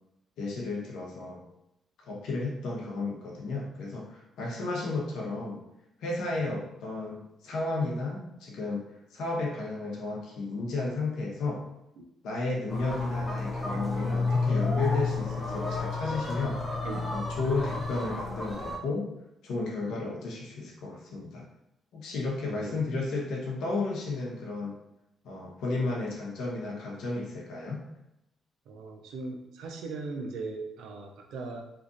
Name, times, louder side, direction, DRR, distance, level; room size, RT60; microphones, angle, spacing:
voice 1, 0.4-1.4 2.1-5.6 6.0-8.9 9.1-11.6 12.2-16.6 17.1-19.1 19.4-21.4 21.9-24.8 25.2-27.8, left 3 dB, 80° left, -2 dB, 0.9 m, -33 dB
sound 1, 12.7-18.8, left 3 dB, 10° left, 0.6 m, -31 dB
voice 2, 13.6-14.4 16.8-17.1 22.5-22.8 28.7-31.6, right 3 dB, 80° right, 3 dB, 0.5 m, -39 dB
2.9 x 2.5 x 2.5 m, 0.86 s
cardioid pair, 90°, 0 cm